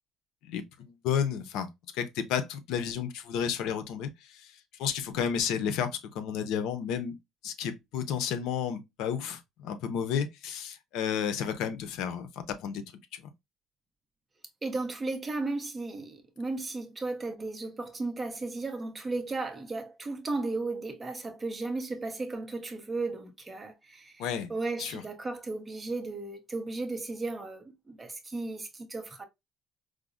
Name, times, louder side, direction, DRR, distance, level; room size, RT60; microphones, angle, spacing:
voice 1, 0.4-1.7 1.9-7.2 7.4-12.8 13.1-13.2 24.2-24.5 24.8-25.0, left 8 dB, 80° left, 0.5 m, -32 dB
voice 2, 14.6-29.2, right 3 dB, 15° right, 0.6 m, -35 dB
4.8 x 2.0 x 2.4 m
cardioid pair, 155°, 0 cm